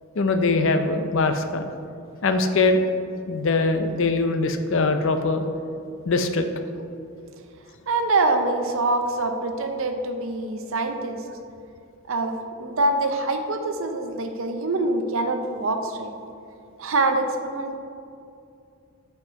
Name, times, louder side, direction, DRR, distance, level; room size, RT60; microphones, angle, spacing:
voice 1, 0.2-1.6 2.2-2.9 3.3-5.4 6.1-6.5, left 3 dB, 60° left, 7 dB, 0.5 m, -22 dB
voice 2, 7.9-11.2 12.1-16.1 16.8-17.8, right 2 dB, 65° right, 6 dB, 0.6 m, -25 dB
7.8 x 4.7 x 4.7 m, 2.5 s
head